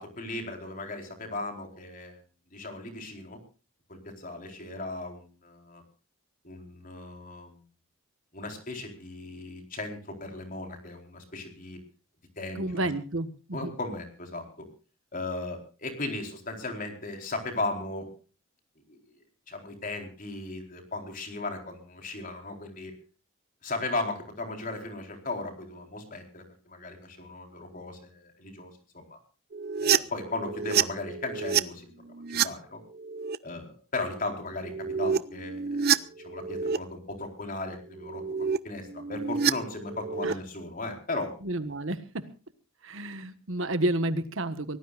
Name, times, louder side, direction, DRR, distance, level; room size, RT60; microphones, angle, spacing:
voice 1, 0.0-2.2 2.5-3.4 3.9-5.8 6.4-7.6 8.3-11.8 12.4-12.9 13.5-14.7 15.1-18.1 18.9-19.0 19.5-22.9 23.6-29.2 29.8-32.8 33.4-38.2 38.6-41.3, left 2 dB, 40° left, 4 dB, 4.3 m, -37 dB
voice 2, 12.5-13.7 40.2-40.3 41.4-42.2 42.8-44.8, right 1 dB, 60° right, 11 dB, 1.5 m, -30 dB
sound 1, 29.5-31.6 32.1-32.5 32.9-33.4 34.5-36.8 37.9-38.6 38.8-40.3, right 7 dB, 45° right, 0.6 m, -28 dB
24.5 x 18.0 x 2.5 m, 0.35 s
head